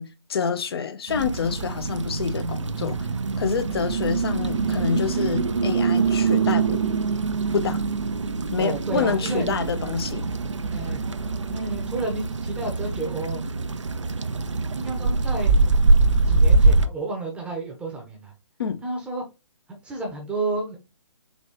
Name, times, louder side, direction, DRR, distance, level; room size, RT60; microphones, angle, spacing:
voice 1, 0.0-3.0 3.4-6.8 7.5-7.8 8.5-10.2 18.6-18.8, left 6 dB, 55° left, 0.7 m, -27 dB
sound 1, 1.1-16.9, right 3 dB, 85° right, 0.4 m, -23 dB
voice 2, 8.6-9.4 10.7-11.0 11.5-13.4 14.7-15.6 16.2-18.3 18.8-19.2 19.8-20.8, right 3 dB, 5° right, 0.7 m, -31 dB
4.1 x 3.0 x 3.0 m
figure-of-eight pair, 135°, 15 cm